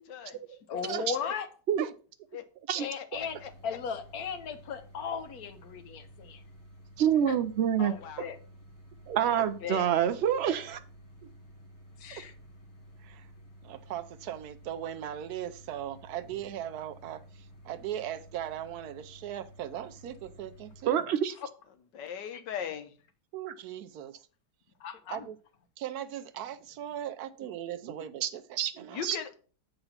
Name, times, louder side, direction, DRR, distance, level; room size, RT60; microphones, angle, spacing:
voice 1, 0.1-0.6 1.2-1.3 2.3-2.4 2.8-3.5 7.8-8.3 21.9-22.9 28.9-29.3, left 8 dB, 85° left, 8 dB, 1.6 m, -39 dB
voice 2, 0.7-1.5 2.8-3.4 3.6-6.4 7.3-7.4 7.9-8.4 9.2-9.9 12.0-12.3 24.8-25.3, left 6 dB, 60° left, 9 dB, 1.3 m, -37 dB
sound 1, 3.1-20.8, equal, 40° left, 1.6 m, -53 dB
voice 3, 7.0-7.9 9.2-10.8 20.9-21.3 28.2-28.3 28.6-28.7 29.0-29.2, right 9 dB, 85° right, 8 dB, 0.5 m, -26 dB
voice 4, 9.1-9.4 11.2-11.3 12.2-12.3 13.0-13.3 13.6-21.1 23.3-24.2 25.1-25.4 25.8-29.0, right 11 dB, 70° right, 12 dB, 1.1 m, -39 dB
8.0 x 3.9 x 5.6 m, 0.39 s
omnidirectional pair, 1.9 m